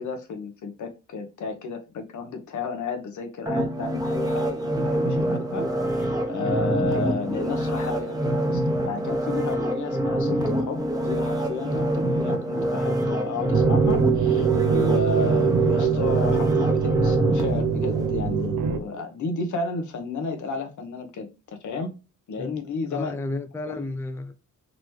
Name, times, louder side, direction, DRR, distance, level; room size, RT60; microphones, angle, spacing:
voice 1, 0.0-5.7 5.9-21.9 22.3-23.1 23.7-23.8, left 4 dB, 70° left, 1.1 m, -32 dB
sound 1, 3.5-18.5 18.9-19.0, right 1 dB, 10° right, 0.9 m, -26 dB
sound 2, 13.5-18.8, right 7 dB, 85° right, 0.8 m, -23 dB
voice 2, 22.9-24.3, left 2 dB, 10° left, 0.4 m, -32 dB
4.0 x 3.1 x 3.1 m
cardioid pair, 120°, 31 cm